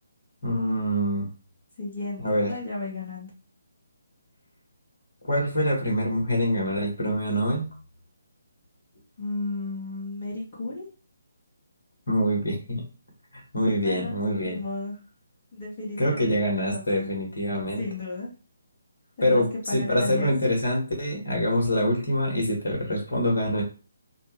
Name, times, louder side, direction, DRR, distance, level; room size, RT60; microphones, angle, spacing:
voice 1, 0.4-1.3 2.2-2.5 5.3-7.7 12.1-12.8 13.5-14.6 16.0-17.8 19.2-23.6, equal, 60° left, -1 dB, 1.1 m, -25 dB
voice 2, 1.8-3.3 9.2-10.8 13.8-14.1 14.4-14.9 15.5-17.1 17.8-18.3 19.2-20.3, left 2 dB, 30° left, -6 dB, 0.9 m, -34 dB
2.6 x 2.2 x 3.0 m, 0.34 s
figure-of-eight pair, 145°, 0 cm